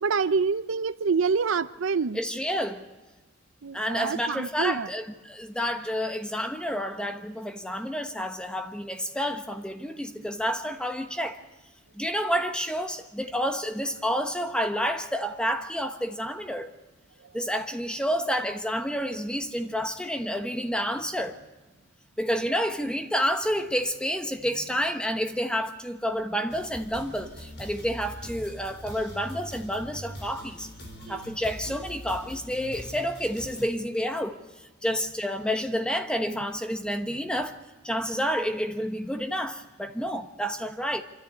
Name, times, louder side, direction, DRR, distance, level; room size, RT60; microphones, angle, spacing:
voice 1, 0.0-2.2 3.6-4.9 31.1-31.2, right 5 dB, 75° right, 0.5 m, -26 dB
voice 2, 2.1-2.9 3.7-11.4 11.9-16.7 17.3-21.4 22.2-30.7 31.1-34.4 34.8-37.6 37.8-41.0, equal, 5° left, 1.2 m, -29 dB
sound 1, 26.5-33.7, equal, 60° left, 4.1 m, -42 dB
25.5 x 13.5 x 8.3 m
head